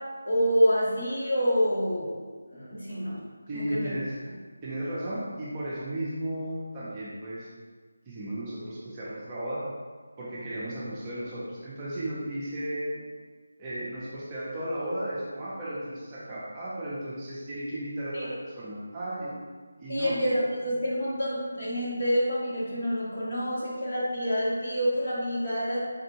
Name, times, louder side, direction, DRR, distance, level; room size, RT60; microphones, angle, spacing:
voice 1, 0.2-2.2 2.5-3.3 3.5-3.9 18.1-18.3 19.9-25.9, equal, 50° left, -7 dB, 1.4 m, -27 dB
voice 2, 3.5-4.2 4.6-7.5 8.1-9.7 10.2-13.1 13.6-19.3 19.8-20.1, right 1 dB, 20° right, -8 dB, 0.6 m, -34 dB
4.1 x 2.5 x 2.9 m, 1.5 s
figure-of-eight pair, 160°, 0 cm